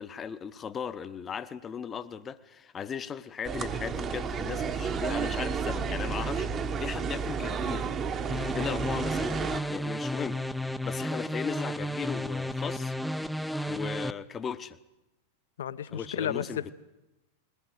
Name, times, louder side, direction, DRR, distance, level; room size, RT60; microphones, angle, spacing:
voice 1, 0.0-7.9 8.5-13.0 13.7-14.8 15.9-16.7, left 7 dB, 20° left, 13 dB, 1.0 m, -37 dB
sound 1, 3.4-9.6, right 6 dB, 25° right, 1.2 m, -31 dB
sound 2, 8.3-14.1, left 1 dB, ahead, 0.7 m, -33 dB
voice 2, 15.6-16.7, left 9 dB, 60° left, 14 dB, 1.0 m, -33 dB
21.5 x 18.5 x 8.1 m, 0.97 s
figure-of-eight pair, 90°, 0 cm